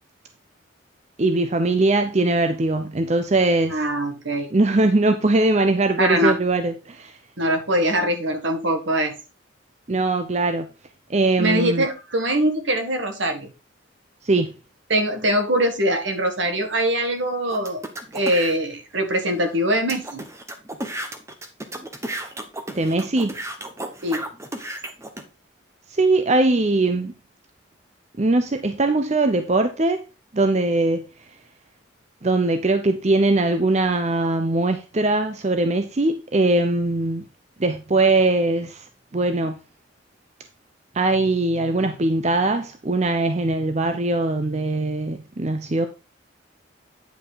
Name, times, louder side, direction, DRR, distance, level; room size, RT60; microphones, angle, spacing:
voice 1, 1.2-3.8 4.5-7.2 9.9-10.7 11.1-11.9 14.2-14.5 22.7-23.4 25.9-27.1 28.2-30.0 30.3-31.0 32.2-37.2 37.6-39.6 40.9-45.9, right 2 dB, 35° right, 0.6 m, -21 dB
voice 2, 3.7-4.5 6.0-6.4 7.4-9.1 11.4-13.5 14.9-17.8 18.1-20.2 24.0-24.2, right 1 dB, 70° right, 1.7 m, -22 dB
sound 1, 17.5-18.5 19.1-19.2 19.5-19.6 19.9-25.2, right 1 dB, 15° right, 1.0 m, -33 dB
9.2 x 5.4 x 3.9 m
head